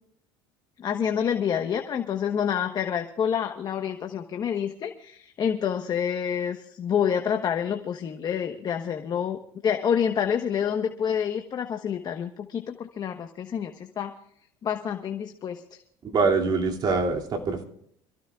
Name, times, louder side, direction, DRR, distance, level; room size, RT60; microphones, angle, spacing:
voice 1, 0.8-14.1 14.6-15.8, left 8 dB, 40° left, 5 dB, 1.2 m, -28 dB
voice 2, 16.0-17.6, right 4 dB, 40° right, 2 dB, 2.7 m, -24 dB
26.5 x 15.5 x 2.4 m, 0.68 s
supercardioid pair, 115°, 11 cm